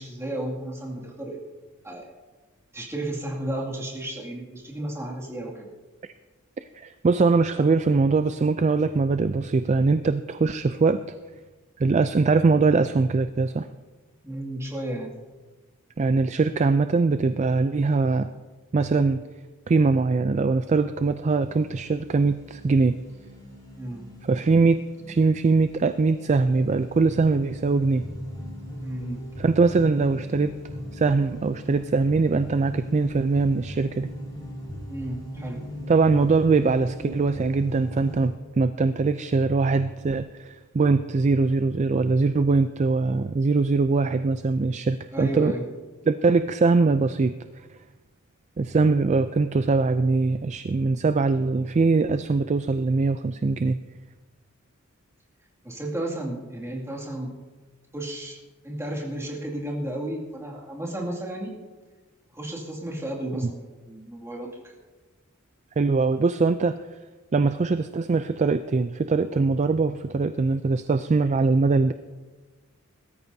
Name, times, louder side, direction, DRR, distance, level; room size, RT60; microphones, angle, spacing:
voice 1, 0.0-1.4 1.8-2.1 2.7-5.7 14.2-15.1 23.8-24.1 28.8-29.2 34.9-35.6 45.1-45.6 55.6-57.3 57.9-58.4 58.6-61.6 62.3-64.8, right 1 dB, 15° right, -3 dB, 2.3 m, -33 dB
voice 2, 6.7-11.0 11.8-13.7 16.0-18.3 18.7-19.2 19.7-23.0 24.2-24.8 25.1-28.1 29.4-30.5 30.9-34.1 35.9-45.5 46.1-47.3 48.6-53.8 65.8-66.8 67.3-71.9, right 4 dB, 35° right, 10 dB, 0.3 m, -22 dB
sound 1, 21.2-38.3, equal, 20° left, 4.8 m, -39 dB
21.5 x 13.5 x 2.7 m, 1.3 s
head